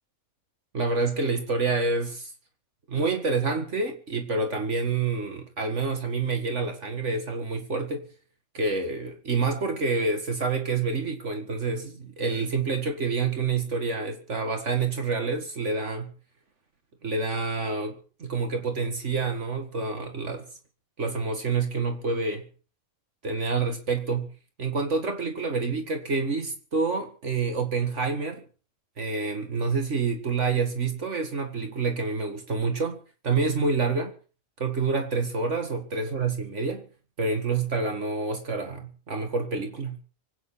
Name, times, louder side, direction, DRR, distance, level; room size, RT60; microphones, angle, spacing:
voice 1, 0.7-2.3 2.9-8.1 8.5-16.1 17.0-20.5 21.0-22.5 23.2-24.3 24.6-28.4 29.0-33.0 33.2-34.1 34.6-36.8 37.2-40.0, right 4 dB, 65° right, 2.1 m, -28 dB
24.5 x 9.5 x 5.6 m
omnidirectional pair, 1.3 m